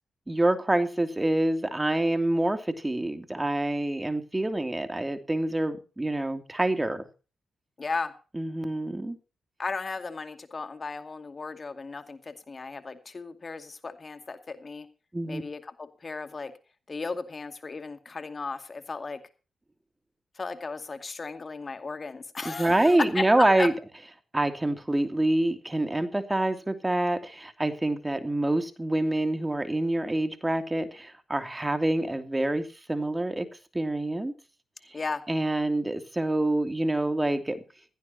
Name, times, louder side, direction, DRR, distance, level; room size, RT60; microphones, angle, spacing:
voice 1, 0.3-7.0 8.3-9.2 15.1-15.4 22.4-23.7 24.3-33.5 33.7-34.3 35.3-37.6, right 1 dB, 20° right, 2.8 m, -26 dB
voice 2, 7.8-8.1 9.6-14.9 15.3-16.5 16.9-19.2 20.4-23.7 34.9-35.2, left 4 dB, 45° left, 2.3 m, -35 dB
17.0 x 15.5 x 2.9 m
supercardioid pair, 45°, 0 cm